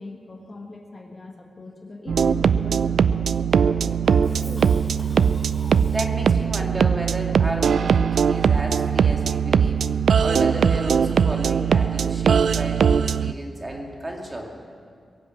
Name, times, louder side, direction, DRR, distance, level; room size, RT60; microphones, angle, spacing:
voice 1, 0.0-4.8, left 2 dB, 35° left, 2 dB, 1.6 m, -40 dB
sound 1, 2.1-13.3, right 7 dB, 75° right, 0.3 m, -20 dB
Cough, 3.5-6.4, left 1 dB, 10° left, 5.2 m, -45 dB
voice 2, 5.9-14.5, right 1 dB, 25° right, 0 dB, 2.4 m, -32 dB
22.0 x 8.1 x 7.7 m, 2.2 s
wide cardioid pair, 105°, 0 cm